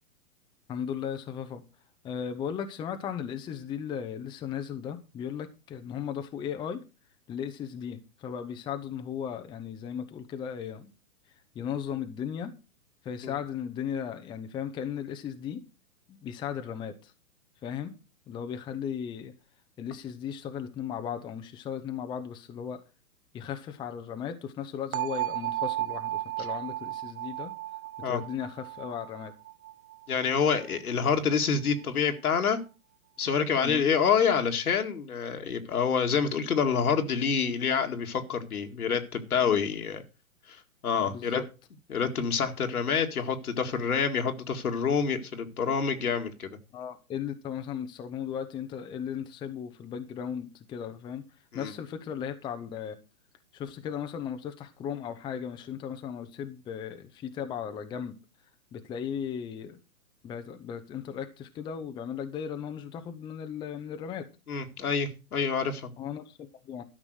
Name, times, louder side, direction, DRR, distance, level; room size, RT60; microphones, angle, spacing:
voice 1, 0.7-1.6 2.0-6.8 7.3-10.9 11.5-12.6 13.0-15.6 16.1-17.1 17.6-17.9 18.3-19.3 19.8-22.8 23.3-27.5 28.0-29.3 33.6-33.8 41.0-41.4 46.7-51.2 51.5-53.0 53.5-58.2 58.7-59.8 60.2-64.3 66.0-66.8, left 8 dB, 10° left, 0.7 m, -36 dB
sound 1, 24.9-30.8, right 15 dB, 70° right, 0.6 m, -35 dB
voice 2, 30.1-32.6 33.2-40.0 40.5-40.6 40.8-41.4 41.9-46.5 51.5-51.7 64.5-65.9, left 6 dB, 85° left, 2.2 m, -27 dB
12.5 x 6.0 x 6.3 m
hypercardioid pair, 135°, 43 cm